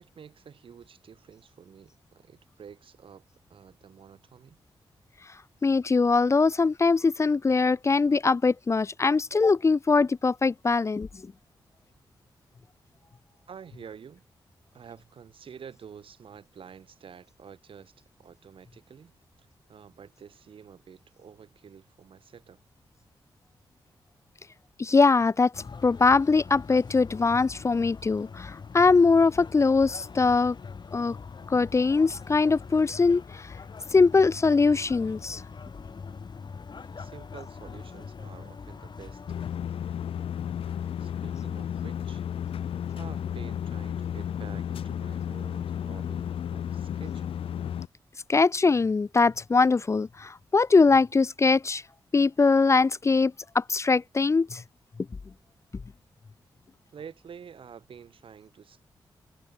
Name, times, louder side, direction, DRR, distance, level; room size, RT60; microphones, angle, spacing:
voice 1, 0.0-4.6 13.5-14.2 14.7-17.9 18.2-22.6 36.9-39.2 40.6-42.2 42.5-47.4 56.9-58.8, right 7 dB, 75° right, 3.1 m, -49 dB
voice 2, 5.6-11.1 24.8-25.5 25.8-30.6 30.9-31.2 31.5-33.4 33.9-35.4 48.3-51.8 52.1-54.6, left 4 dB, 30° left, 0.4 m, -22 dB
sound 1, 25.5-39.5, left 5 dB, 55° left, 4.3 m, -43 dB
sound 2, 39.3-47.9, left 9 dB, 90° left, 1.0 m, -33 dB
cardioid pair, 75°, 9 cm